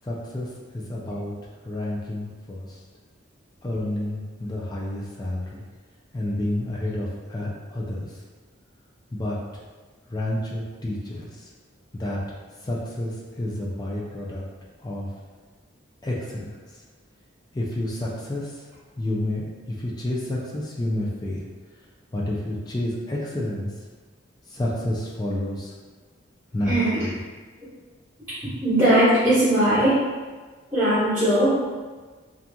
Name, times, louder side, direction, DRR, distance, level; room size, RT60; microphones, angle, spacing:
voice 1, 0.0-0.5 0.7-1.3 1.6-2.8 3.6-5.6 6.1-8.2 9.1-9.4 10.1-11.3 11.9-12.2 12.6-14.4 14.8-15.1 16.0-16.5 17.5-18.5 19.0-21.5 22.1-23.7 24.5-25.7 26.5-27.2, left 1 dB, 20° left, -4 dB, 0.4 m, -29 dB
voice 2, 26.6-27.0 28.6-30.0 30.7-31.7, right 1 dB, 15° right, -17 dB, 1.3 m, -19 dB
2.9 x 2.5 x 2.2 m, 1.4 s
head